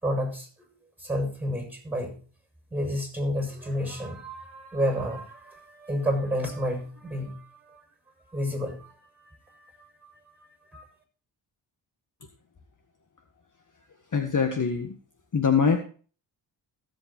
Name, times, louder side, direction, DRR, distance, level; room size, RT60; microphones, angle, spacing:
voice 1, 0.0-0.7 1.0-2.2 2.7-7.8 8.3-9.0 9.3-10.1 10.7-10.9, equal, 5° right, 3 dB, 7.0 m, -31 dB
voice 2, 14.1-15.0 15.3-15.8, left 6 dB, 45° left, 6 dB, 1.7 m, -23 dB
15.0 x 8.0 x 4.3 m, 0.39 s
cardioid pair, 65°, 43 cm